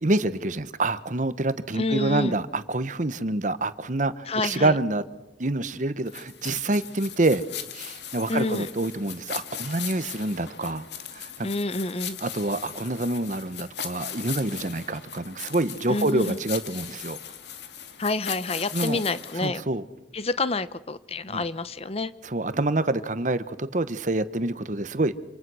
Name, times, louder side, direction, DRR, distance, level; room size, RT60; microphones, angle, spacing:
voice 1, 0.0-5.0 5.4-7.4 7.7-10.9 11.1-11.5 12.2-17.2 18.7-19.0 19.4-19.8 21.3-21.4 22.2-25.1, right 2 dB, 45° right, 1.1 m, -27 dB
voice 2, 1.7-2.4 4.3-4.8 8.3-8.7 11.4-12.2 15.9-16.4 18.0-19.6 20.1-22.1, left 2 dB, 35° left, 0.8 m, -28 dB
sound 1, 6.1-19.5, left 9 dB, 75° left, 1.9 m, -39 dB
28.0 x 27.0 x 6.3 m
head